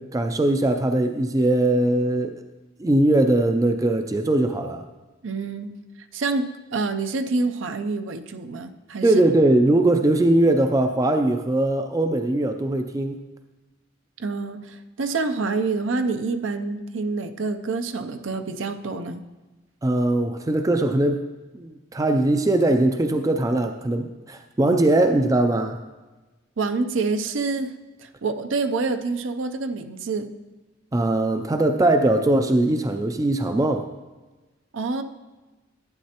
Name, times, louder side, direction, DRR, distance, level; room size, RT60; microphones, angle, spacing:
voice 1, 0.0-2.4 2.8-4.8 9.0-13.2 19.8-21.3 21.5-25.8 30.9-33.9, right 1 dB, 15° right, 7 dB, 0.3 m, -21 dB
voice 2, 5.2-5.7 6.1-9.2 14.2-19.2 26.6-27.7 28.0-30.3 34.7-35.0, right 3 dB, 75° right, 9 dB, 0.5 m, -27 dB
11.5 x 9.3 x 2.9 m, 1.2 s
head